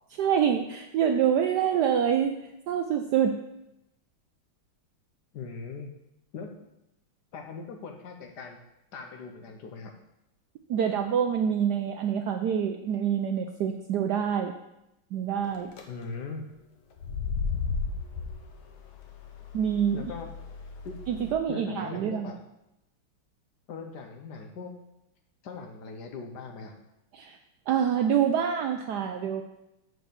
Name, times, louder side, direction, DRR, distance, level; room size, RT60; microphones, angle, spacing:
voice 1, 0.2-2.4 2.7-3.4 10.7-14.5 15.1-15.7 19.5-20.1 21.1-22.3 27.1-27.4 27.7-29.4, right 8 dB, 75° right, 5 dB, 0.9 m, -26 dB
voice 2, 5.3-5.9 6.3-6.7 7.3-8.6 8.9-9.9 15.9-16.5 19.9-20.3 20.8-21.0 21.5-22.4 23.7-24.7 25.4-26.7, left 4 dB, 65° left, 4 dB, 1.2 m, -40 dB
sound 1, 15.4-15.8 16.9-21.3, left 5 dB, 80° left, 1.8 m, -35 dB
8.0 x 4.5 x 6.6 m, 0.86 s
omnidirectional pair, 2.3 m